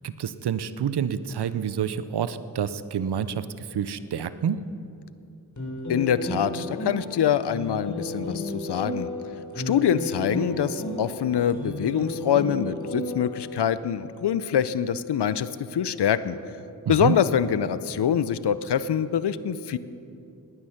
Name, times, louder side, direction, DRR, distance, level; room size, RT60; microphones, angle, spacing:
voice 1, 0.0-4.6 16.9-17.2, right 8 dB, 70° right, 14 dB, 0.7 m, -28 dB
sound 1, 5.6-13.6, left 1 dB, 45° left, 3.9 m, -33 dB
voice 2, 5.9-9.1 9.6-16.4 16.9-19.8, left 9 dB, 75° left, 15 dB, 0.7 m, -25 dB
19.0 x 9.8 x 5.8 m, 2.7 s
cardioid pair, 45°, 41 cm